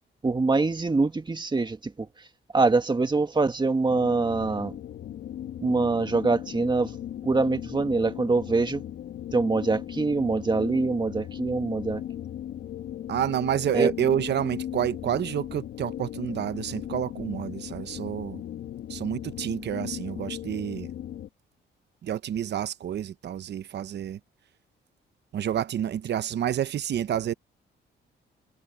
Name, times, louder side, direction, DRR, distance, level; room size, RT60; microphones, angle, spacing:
voice 1, 0.2-2.1 2.5-4.8 5.6-7.0 7.2-8.8 9.3-12.0 13.7-13.9, right 3 dB, 25° right, 1.9 m, -24 dB
sound 1, 3.9-21.3, left 11 dB, 70° left, 1.8 m, -37 dB
voice 2, 13.1-18.4 18.9-20.9 22.0-24.2 25.3-27.3, right 10 dB, 60° right, 0.9 m, -29 dB
cardioid pair, 90°, 20 cm